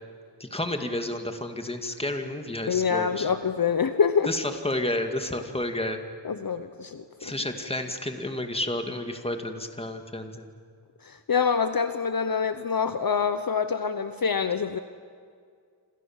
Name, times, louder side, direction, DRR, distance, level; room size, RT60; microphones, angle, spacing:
voice 1, 0.4-3.3 4.3-6.0 7.2-10.5, left 1 dB, 15° left, 5 dB, 2.3 m, -31 dB
voice 2, 2.7-4.3 6.2-7.4 11.0-14.8, left 6 dB, 50° left, 10 dB, 1.0 m, -26 dB
28.0 x 27.5 x 7.4 m, 2.2 s
wide cardioid pair, 95°, 44 cm